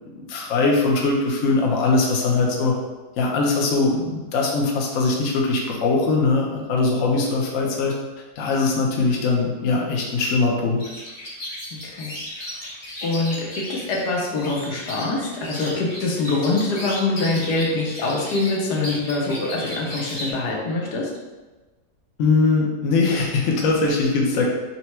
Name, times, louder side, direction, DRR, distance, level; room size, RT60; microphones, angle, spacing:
voice 1, 0.2-2.8 3.2-7.9 8.4-10.8 22.2-24.4, left 3 dB, 60° left, -1 dB, 0.9 m, -21 dB
sound 1, 10.8-20.3, left 1 dB, 30° left, 0.7 m, -35 dB
voice 2, 11.7-12.5 13.0-21.1, left 2 dB, 75° left, -2 dB, 1.3 m, -24 dB
4.2 x 2.2 x 4.3 m, 1.2 s
omnidirectional pair, 1.8 m